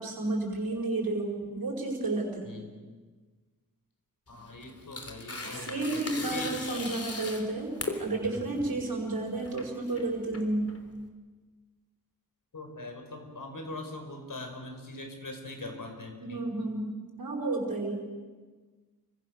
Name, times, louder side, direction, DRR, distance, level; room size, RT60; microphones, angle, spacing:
voice 1, 0.0-2.4 5.4-7.7 8.0-10.7 16.2-16.9 17.2-17.9, right 2 dB, 85° right, -3 dB, 5.1 m, -31 dB
voice 2, 4.3-6.0 6.3-6.5 12.5-16.4, left 2 dB, 70° left, 4 dB, 5.3 m, -41 dB
Tearing, 4.3-11.0, left 2 dB, 45° left, 3.6 m, -39 dB
29.0 x 24.5 x 6.6 m, 1.4 s
wide cardioid pair, 95°, 34 cm